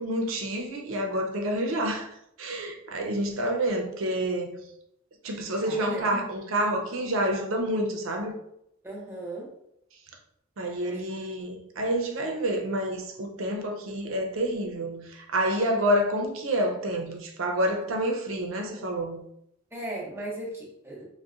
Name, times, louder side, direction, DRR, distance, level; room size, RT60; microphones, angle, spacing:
voice 1, 0.0-2.1 2.4-4.6 5.2-8.3 10.6-19.2, right 1 dB, 85° right, 0.5 m, -28 dB
voice 2, 5.4-6.0 8.8-9.5 10.8-11.1 11.4-11.5 19.7-21.0, right 1 dB, 10° right, 0.6 m, -38 dB
3.8 x 2.1 x 2.4 m
head